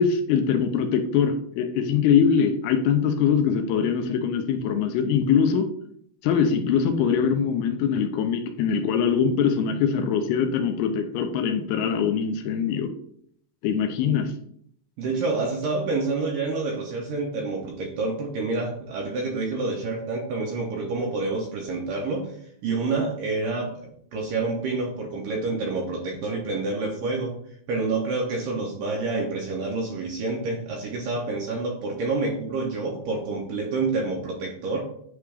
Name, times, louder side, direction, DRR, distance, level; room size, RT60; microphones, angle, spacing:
voice 1, 0.0-5.7 6.2-12.9 13.6-14.3, left 7 dB, 80° left, 6 dB, 2.4 m, -22 dB
voice 2, 15.0-22.4 22.6-27.4 27.7-34.8, right 3 dB, 85° right, -1 dB, 1.9 m, -28 dB
9.1 x 3.4 x 3.3 m, 0.67 s
omnidirectional pair, 5.0 m